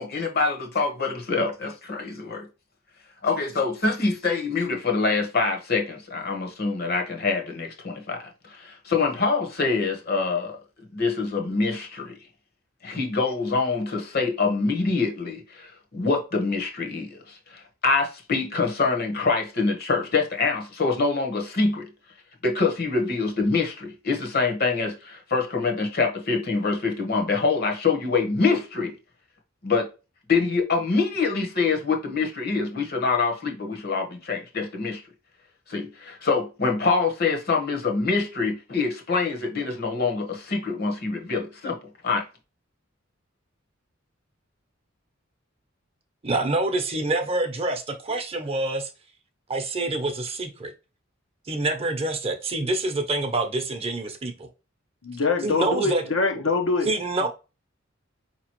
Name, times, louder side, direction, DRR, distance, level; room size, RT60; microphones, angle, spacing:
voice 1, 0.0-2.5 3.2-10.6 10.9-12.1 12.8-21.9 22.4-28.9 29.6-29.9 30.3-35.0 35.7-41.8 42.0-42.3, left 4 dB, 50° left, 1.1 m, -25 dB
voice 2, 46.2-48.9 49.5-50.7 51.5-54.5 55.4-56.0 56.8-57.3, right 2 dB, 30° right, 0.7 m, -26 dB
voice 3, 55.0-56.9, left 3 dB, 75° left, 0.9 m, -24 dB
4.9 x 3.0 x 2.9 m
head